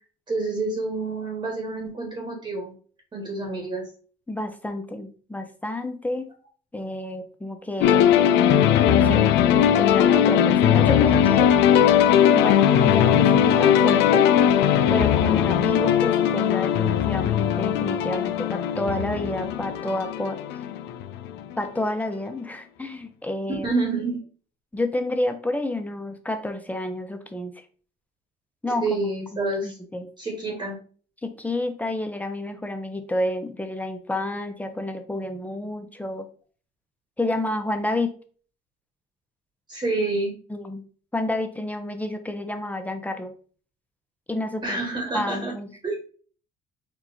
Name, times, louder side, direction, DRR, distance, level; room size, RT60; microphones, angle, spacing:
voice 1, 0.3-2.7 3.1-3.9 23.6-24.2 28.8-29.8 30.2-30.8 39.7-40.3 44.6-45.5 45.8-45.9, right 3 dB, 30° right, 1 dB, 1.4 m, -28 dB
voice 2, 4.3-6.3 6.7-8.0 8.9-11.5 12.3-14.5 14.9-20.4 21.6-23.7 24.7-27.5 28.6-28.8 29.3-30.1 31.2-36.3 37.2-38.1 40.5-40.8 41.1-43.3 44.3-44.8 45.1-45.9, left 1 dB, 10° left, 6 dB, 0.7 m, -29 dB
sound 1, 7.8-21.5, left 9 dB, 85° left, 0.5 m, -19 dB
4.6 x 2.5 x 4.2 m, 0.41 s
cardioid pair, 110°, 17 cm